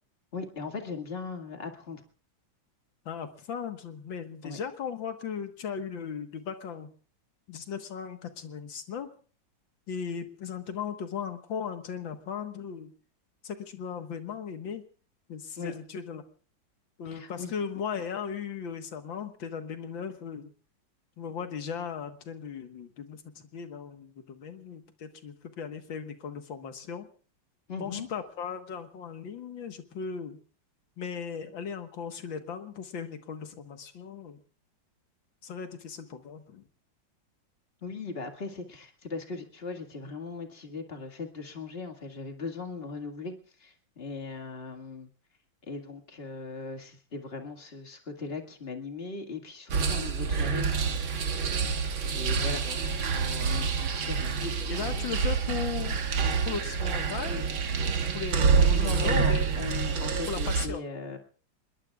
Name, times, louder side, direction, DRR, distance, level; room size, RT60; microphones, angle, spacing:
voice 1, 0.3-2.0 4.4-4.6 15.6-15.7 17.1-17.5 27.7-28.1 37.8-43.3 43.6-45.1 45.7-51.2 52.0-52.6 53.1-54.5 54.8-55.1 58.0-58.2 58.5-61.2, left 4 dB, 30° left, 4 dB, 2.1 m, -39 dB
voice 2, 3.1-6.9 7.5-9.1 9.9-12.9 13.4-14.9 15.3-16.2 17.0-20.5 21.2-27.1 27.8-30.4 31.0-34.4 35.4-36.7 52.4-52.8 54.4-56.0 56.5-57.5 58.1-59.5 60.3-60.8, left 6 dB, 80° left, 7 dB, 2.2 m, -37 dB
sound 1, 49.7-60.7, right 5 dB, 85° right, 2.3 m, -27 dB
26.5 x 21.5 x 2.4 m, 0.40 s
omnidirectional pair, 2.1 m